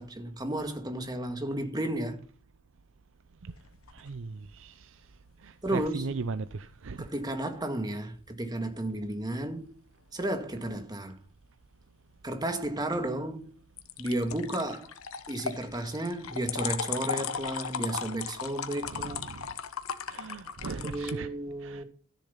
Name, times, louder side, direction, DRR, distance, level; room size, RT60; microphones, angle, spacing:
voice 1, 0.0-2.2 5.6-6.1 7.0-9.8 10.1-11.2 12.2-13.5 14.0-14.9 15.3-19.3 20.7-21.8, right 1 dB, 20° right, 1.8 m, -33 dB
sound 1, 3.5-4.2 13.8-21.1, left 7 dB, 85° left, 1.1 m, -37 dB
voice 2, 3.9-5.0 5.4-7.1 18.8-19.5 20.1-21.3 21.6-21.8, right 4 dB, 65° right, 0.6 m, -38 dB
13.0 x 7.2 x 5.7 m
head